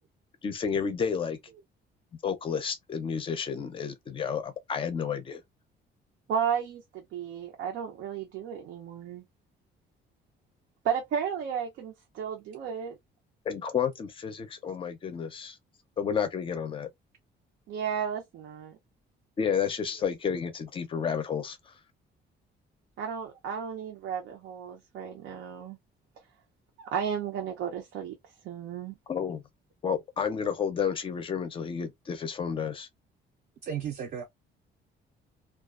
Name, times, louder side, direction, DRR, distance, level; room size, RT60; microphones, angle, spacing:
voice 1, 0.4-1.4 2.2-5.4 13.5-15.6 16.0-16.9 19.4-21.7 29.1-29.4 29.8-32.9, left 7 dB, 30° left, 0.4 m, -31 dB
voice 2, 6.3-9.2 10.8-13.0 17.7-18.8 23.0-25.8 26.8-28.2 28.4-28.9, right 7 dB, 90° right, 0.7 m, -33 dB
voice 3, 33.6-34.2, right 8 dB, 50° right, 0.5 m, -35 dB
2.3 x 2.3 x 2.3 m
cardioid pair, 175°, 19 cm